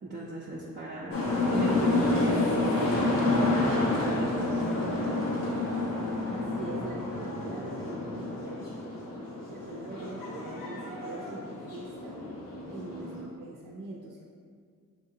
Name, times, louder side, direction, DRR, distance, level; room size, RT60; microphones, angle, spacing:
voice 1, 0.0-4.6, right 1 dB, 35° right, -6 dB, 0.7 m, -38 dB
sound 1, 1.1-13.2, left 2 dB, 80° left, 1.0 m, -29 dB
voice 2, 6.3-8.7 9.5-12.2 12.7-14.3, right 2 dB, 75° right, -5 dB, 0.6 m, -42 dB
6.4 x 2.8 x 2.6 m, 2.1 s
cardioid pair, 60°, 33 cm